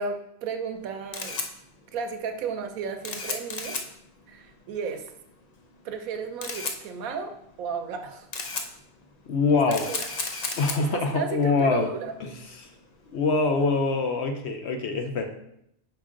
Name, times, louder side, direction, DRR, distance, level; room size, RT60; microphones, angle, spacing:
voice 1, 0.0-1.4 1.9-3.8 4.3-5.0 5.8-8.3 9.7-10.0 10.8-12.1, right 5 dB, 70° right, 6 dB, 1.0 m, -33 dB
Camera, 0.7-14.1, left 4 dB, 90° left, 0.3 m, -37 dB
voice 2, 9.3-9.9 10.6-11.9 12.2-12.3 13.1-15.3, left 3 dB, 65° left, 5 dB, 0.7 m, -24 dB
5.8 x 4.8 x 3.7 m, 0.77 s
omnidirectional pair, 1.6 m